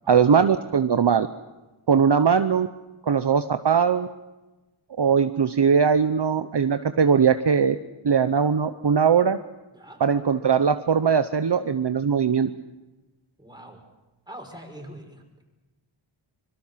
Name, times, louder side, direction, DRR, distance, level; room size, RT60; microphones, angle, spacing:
voice 1, 0.1-1.3 1.9-2.7 3.1-4.1 5.0-7.8 8.0-9.4 10.0-12.5, right 6 dB, 55° right, 9 dB, 1.0 m, -20 dB
voice 2, 9.7-10.0 13.4-13.8 14.3-15.4, right 1 dB, 10° right, 2 dB, 6.1 m, -43 dB
25.5 x 23.0 x 5.8 m, 1.1 s
wide cardioid pair, 65°, 49 cm